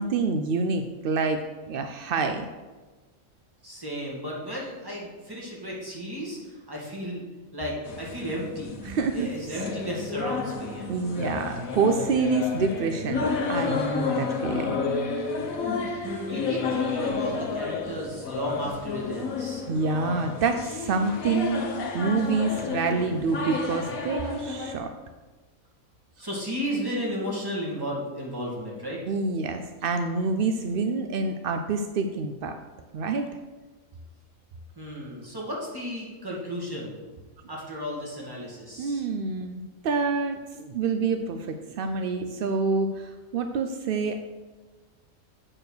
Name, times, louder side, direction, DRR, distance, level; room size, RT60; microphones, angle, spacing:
voice 1, 0.0-1.4 1.7-2.5 8.8-9.6 10.9-14.8 19.7-21.6 21.9-24.9 29.1-32.6 32.9-33.3 38.8-44.2, right 4 dB, 70° right, 7 dB, 0.5 m, -27 dB
voice 2, 3.6-7.2 7.5-8.8 9.1-10.9 16.0-19.6 26.2-29.0 34.8-37.0 37.5-39.0, equal, 15° right, -5 dB, 2.2 m, -34 dB
sound 1, 7.9-24.8, left 4 dB, 75° left, 1.4 m, -31 dB
8.6 x 4.5 x 6.6 m, 1.3 s
omnidirectional pair, 1.5 m